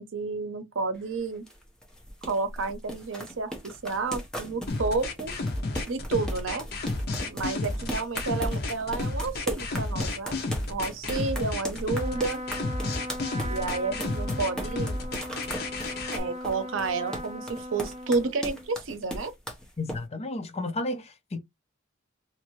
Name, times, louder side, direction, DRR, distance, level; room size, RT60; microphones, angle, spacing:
voice 1, 0.0-1.5 2.2-5.3 5.9-6.7 7.3-10.4 10.7-12.4 13.5-15.0 16.1-19.3, right 4 dB, 70° right, 0.7 m, -31 dB
sound 1, 0.9-20.0, equal, 5° left, 0.9 m, -38 dB
sound 2, 4.7-16.2, left 2 dB, 55° left, 0.9 m, -31 dB
Trumpet, 11.8-18.7, equal, 35° right, 0.7 m, -38 dB
voice 2, 19.8-21.4, left 2 dB, 30° left, 0.6 m, -32 dB
2.9 x 2.7 x 3.0 m
head